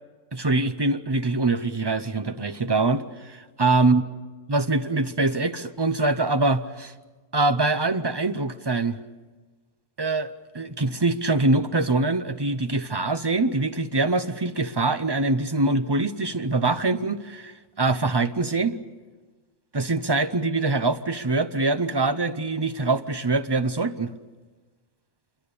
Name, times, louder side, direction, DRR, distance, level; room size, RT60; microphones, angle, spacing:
voice 1, 0.3-4.0 4.5-6.9 7.3-9.0 10.0-18.7 19.7-24.1, right 3 dB, 30° right, 10 dB, 0.5 m, -24 dB
27.0 x 23.5 x 6.9 m, 1.3 s
omnidirectional pair, 1.6 m